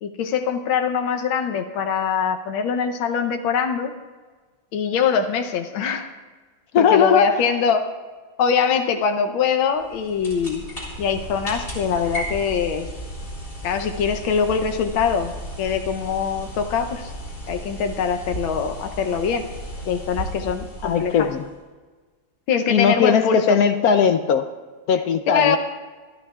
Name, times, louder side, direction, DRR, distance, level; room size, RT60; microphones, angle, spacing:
voice 1, 0.0-3.9 4.7-6.1 6.8-7.9 8.4-10.6 11.0-12.9 13.6-15.3 15.6-17.1 17.5-19.5 19.9-21.3 22.5-23.6 25.3-25.6, left 6 dB, 85° left, 6 dB, 1.6 m, -23 dB
voice 2, 6.7-7.4 20.8-21.4 22.7-24.5 24.9-25.6, left 7 dB, 70° left, 9 dB, 0.8 m, -18 dB
sound 1, 9.8-21.6, equal, 25° left, 3.7 m, -35 dB
25.5 x 11.5 x 2.4 m, 1.4 s
omnidirectional pair, 2.1 m